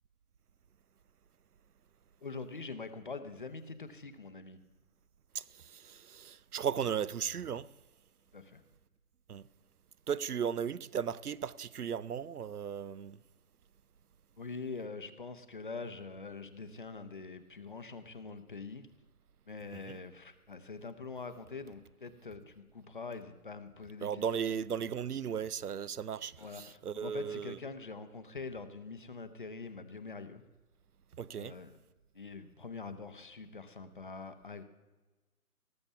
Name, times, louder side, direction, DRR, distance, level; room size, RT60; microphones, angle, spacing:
voice 1, 2.2-4.6 8.3-8.6 14.4-18.9 19.5-24.5 26.4-30.4 31.3-31.8 32.1-34.6, left 4 dB, 35° left, 0.8 m, -44 dB
voice 2, 5.3-7.7 9.3-9.4 10.1-13.2 19.9-20.0 24.0-27.6 31.2-31.6, right 8 dB, 75° right, 0.6 m, -36 dB
18.5 x 7.0 x 7.0 m
figure-of-eight pair, 155°, 45 cm